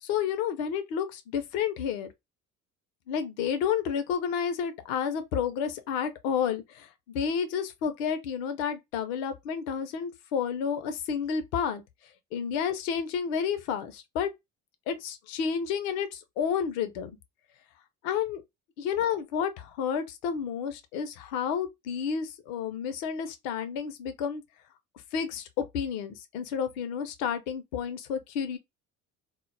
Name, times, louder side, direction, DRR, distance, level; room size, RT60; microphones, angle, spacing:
voice 1, 0.0-2.1 3.1-11.8 12.3-14.3 14.9-17.1 18.0-18.4 18.8-24.4 25.1-28.6, left 7 dB, 75° left, 0.7 m, -30 dB
2.3 x 2.0 x 3.1 m
hypercardioid pair, 60°, 41 cm